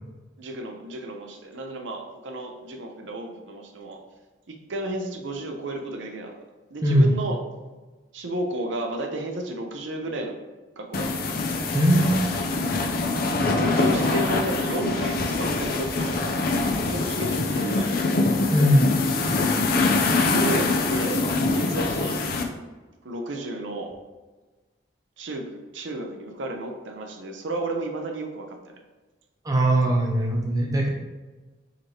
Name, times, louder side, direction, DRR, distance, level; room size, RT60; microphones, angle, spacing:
voice 1, 0.4-4.0 4.5-6.4 6.7-7.4 8.1-10.4 10.8-11.3 13.1-16.5 16.8-18.0 20.3-22.3 23.0-23.9 25.2-28.6, right 1 dB, 85° right, 3 dB, 0.7 m, -32 dB
voice 2, 6.8-7.1 11.7-12.2 18.5-18.9 29.4-30.9, equal, 20° right, 0 dB, 0.6 m, -20 dB
sound 1, 10.9-22.4, left 3 dB, 50° left, 0.5 m, -24 dB
4.9 x 2.9 x 3.2 m, 1.3 s
head